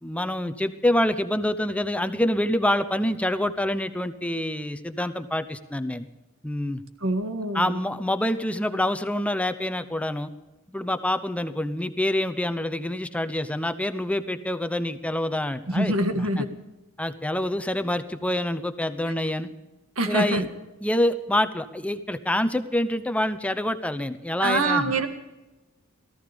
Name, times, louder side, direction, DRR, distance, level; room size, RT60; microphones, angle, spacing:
voice 1, 0.0-6.1 6.4-6.8 7.5-10.3 10.7-16.4 17.0-19.5 20.1-20.5 20.8-24.9, left 1 dB, 5° left, 11 dB, 0.8 m, -26 dB
voice 2, 7.0-7.8 15.7-16.5 19.9-20.5 24.4-25.1, right 2 dB, 70° right, 7 dB, 1.8 m, -25 dB
18.0 x 14.0 x 5.2 m, 1.0 s
head